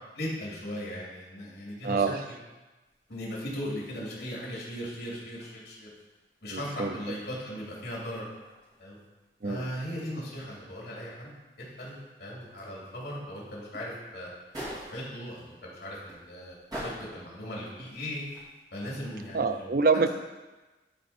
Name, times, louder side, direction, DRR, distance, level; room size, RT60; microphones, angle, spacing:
voice 1, 0.1-2.2 3.1-5.9 6.4-8.3 8.8-9.0 9.4-11.3 11.8-14.3 14.7-18.2 18.7-19.7, equal, 65° left, -5 dB, 2.8 m, -38 dB
voice 2, 1.8-2.2 6.5-7.0 9.4-9.7 19.3-20.1, right 4 dB, 55° right, 9 dB, 0.5 m, -26 dB
sound 1, 2.9-18.6, equal, 20° right, 2.3 m, -48 dB
12.5 x 4.4 x 4.3 m, 1.2 s
head